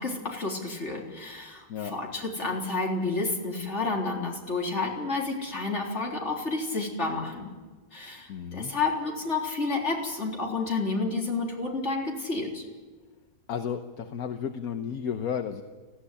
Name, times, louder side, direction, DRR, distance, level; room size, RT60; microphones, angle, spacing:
voice 1, 0.0-7.5 7.9-12.6, left 3 dB, 45° left, -1 dB, 4.0 m, -30 dB
voice 2, 8.3-8.7 13.5-15.6, left 7 dB, 70° left, 7 dB, 1.4 m, -33 dB
19.0 x 16.0 x 9.9 m, 1.3 s
omnidirectional pair, 1.7 m